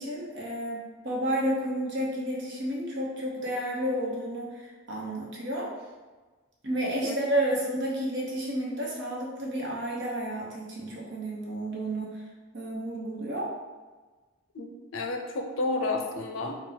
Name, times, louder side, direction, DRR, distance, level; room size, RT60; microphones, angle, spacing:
voice 1, 0.0-5.7 6.6-12.2 12.5-13.5, right 1 dB, 60° right, -3 dB, 1.0 m, -31 dB
voice 2, 14.5-16.6, left 2 dB, 80° left, 3 dB, 0.6 m, -31 dB
4.3 x 2.3 x 3.9 m, 1.3 s
head